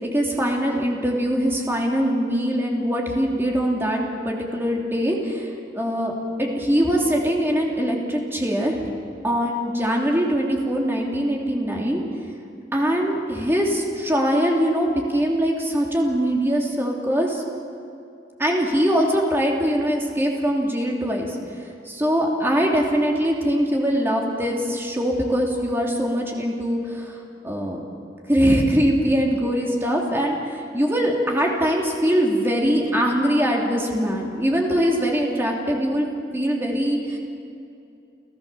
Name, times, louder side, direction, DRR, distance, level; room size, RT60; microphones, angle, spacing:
voice 1, 0.0-5.5 5.7-6.1 6.4-8.9 9.2-12.0 12.7-17.4 18.4-21.3 21.9-27.1 27.4-27.8 28.3-36.1 36.3-37.2, equal, 15° right, -1 dB, 2.9 m, -22 dB
30.0 x 14.0 x 6.9 m, 2.6 s
head